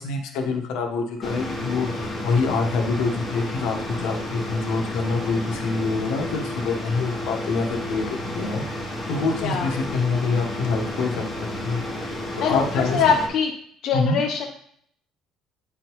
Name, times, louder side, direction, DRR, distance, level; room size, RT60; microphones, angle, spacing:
voice 1, 0.0-8.6 9.1-11.2 11.6-13.0 13.9-14.2, left 4 dB, 80° left, 3 dB, 1.1 m, -26 dB
sound 1, 1.2-13.3, left 1 dB, 10° left, 1.7 m, -31 dB
voice 2, 9.4-9.7 12.4-13.5 13.8-14.5, left 6 dB, 55° left, 0 dB, 0.7 m, -23 dB
9.0 x 3.8 x 3.0 m, 0.65 s
cardioid pair, 145°, 0 cm